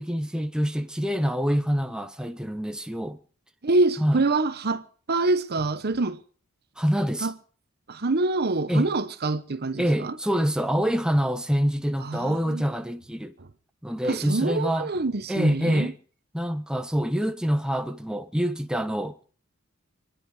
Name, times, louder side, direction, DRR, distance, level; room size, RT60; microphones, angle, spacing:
voice 1, 0.0-3.2 4.0-4.2 6.8-7.3 8.7-8.9 9.8-13.3 13.8-14.9 15.3-15.9 16.3-19.2, equal, 5° right, 0.7 m, -26 dB
voice 2, 3.6-6.2 7.2-7.3 7.9-10.2 12.0-12.6 13.4-13.5 14.0-15.9, right 2 dB, 50° right, 1.0 m, -26 dB
26.5 x 10.0 x 4.8 m
head